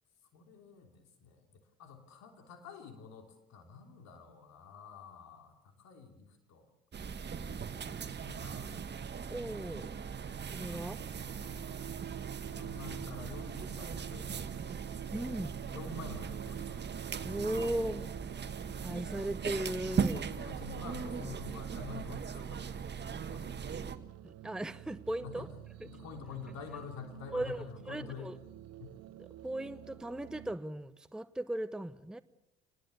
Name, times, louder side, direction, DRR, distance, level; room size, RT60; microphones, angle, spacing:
voice 1, 0.3-6.7 8.0-8.8 10.7-11.8 12.5-14.8 15.7-16.9 20.3-23.7 25.2-25.5 25.8-28.4 28.8-29.0, left 6 dB, 55° left, 4 dB, 3.4 m, -48 dB
sound 1, 6.9-24.0, right 6 dB, 35° right, 1.6 m, -39 dB
voice 2, 9.3-9.9 10.5-11.0 15.1-15.5 17.2-18.2 18.8-20.3 24.2-25.5 27.3-28.4 29.2-32.2, right 1 dB, ahead, 13 dB, 0.9 m, -37 dB
sound 2, 10.7-30.6, right 14 dB, 50° right, 0.8 m, -50 dB
24.5 x 20.5 x 7.0 m, 0.83 s
figure-of-eight pair, 55°, 32 cm